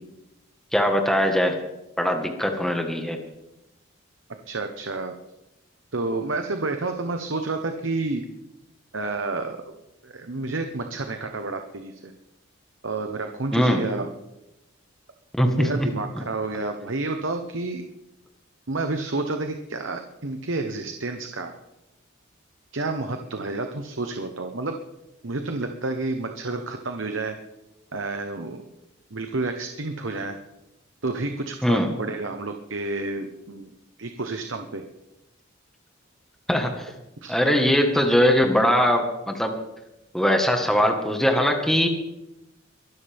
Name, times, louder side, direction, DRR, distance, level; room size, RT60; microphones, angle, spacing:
voice 1, 0.7-1.5 2.0-3.2 13.5-13.8 15.4-15.7 31.6-31.9 36.5-36.9 37.3-39.5 40.1-41.9, equal, ahead, 3 dB, 1.5 m, -21 dB
voice 2, 4.5-5.1 5.9-8.3 8.9-9.7 10.0-12.1 12.8-14.1 15.4-17.8 18.7-21.6 22.7-24.8 25.2-27.4 27.9-28.6 29.1-30.4 31.0-33.7 34.0-34.8 37.2-37.3, right 3 dB, 65° right, 5 dB, 1.0 m, -30 dB
23.5 x 12.5 x 3.6 m, 0.93 s
head